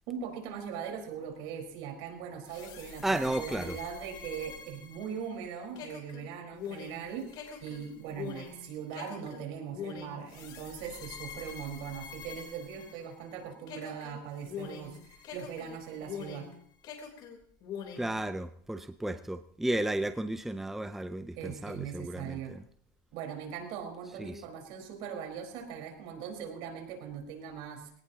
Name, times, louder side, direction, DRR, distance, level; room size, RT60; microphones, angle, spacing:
voice 1, 0.1-16.5 21.4-22.6 23.1-27.9, right 7 dB, 65° right, 3 dB, 4.5 m, -40 dB
sound 1, 2.5-13.3 13.7-16.5 16.8-18.1, left 7 dB, 50° left, 3.6 m, -44 dB
voice 2, 3.0-3.8 18.0-22.4 24.2-24.4, right 1 dB, 5° right, 10 dB, 0.6 m, -33 dB
22.0 x 18.0 x 2.9 m, 0.65 s
supercardioid pair, 130°, 10 cm